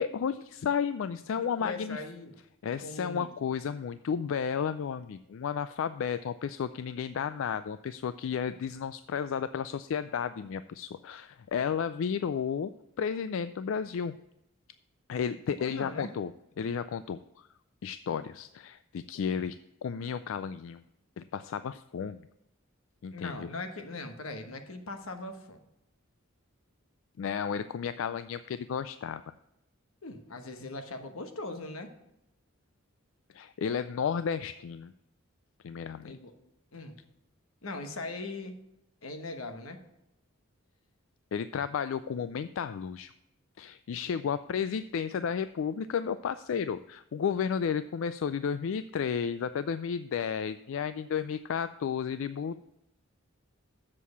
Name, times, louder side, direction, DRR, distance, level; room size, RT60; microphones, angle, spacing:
voice 1, 0.0-2.0 2.6-12.7 13.0-14.1 15.1-16.3 16.6-17.5 17.8-19.6 19.8-20.8 21.2-22.2 23.0-23.5 27.2-29.2 33.3-34.9 35.6-36.2 41.3-43.1 43.6-52.6, left 7 dB, 70° left, 13 dB, 0.3 m, -33 dB
voice 2, 1.4-2.4 2.8-3.3 15.6-16.1 23.1-25.6 30.0-31.9 36.0-36.3 36.7-37.0 37.6-38.6 39.0-39.8, left 2 dB, 90° left, 7 dB, 1.3 m, -40 dB
7.5 x 6.4 x 6.9 m, 0.85 s
head